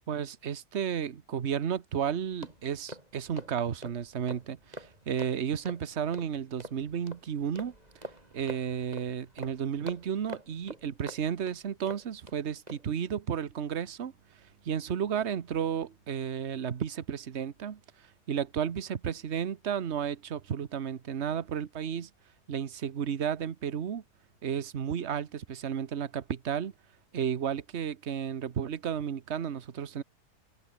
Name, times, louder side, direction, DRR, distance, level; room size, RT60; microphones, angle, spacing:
voice 1, 0.1-7.7 8.3-14.1 14.6-17.8 18.3-22.1 22.5-24.0 24.4-26.7 27.1-30.0, right 8 dB, 45° right, 1.3 m, -33 dB
sound 1, 2.0-12.4 12.7-12.9, right 1 dB, 25° right, 7.4 m, -46 dB
omnidirectional pair, 1.7 m